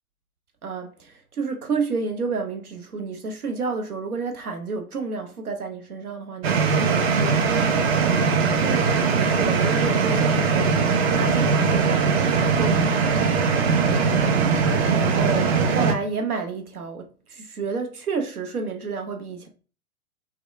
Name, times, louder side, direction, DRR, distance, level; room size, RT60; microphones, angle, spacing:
voice 1, 0.6-10.8 11.1-13.3 14.9-19.5, right 4 dB, 85° right, 0.7 m, -30 dB
sound 1, 6.4-15.9, right 5 dB, 45° right, 0.5 m, -20 dB
2.8 x 2.2 x 2.3 m
figure-of-eight pair, 100°, 43 cm